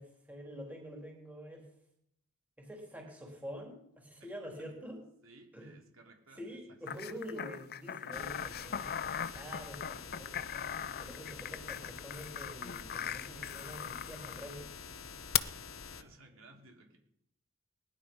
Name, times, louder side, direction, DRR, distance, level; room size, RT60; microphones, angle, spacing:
voice 1, 0.0-1.7 2.6-5.0 5.5-5.7 6.4-9.0 9.3-10.4 11.0-14.7, equal, 10° right, 0 dB, 3.6 m, -46 dB
voice 2, 4.2-4.7 5.2-6.8 7.0-7.3 15.9-17.0, right 2 dB, 70° right, 2 dB, 3.1 m, -59 dB
sound 1, 6.9-14.5 15.3-15.4, left 9 dB, 45° left, 0.6 m, -39 dB
sound 2, 8.1-16.0, left 5 dB, 70° left, 1.2 m, -48 dB
20.0 x 11.0 x 5.5 m, 0.74 s
head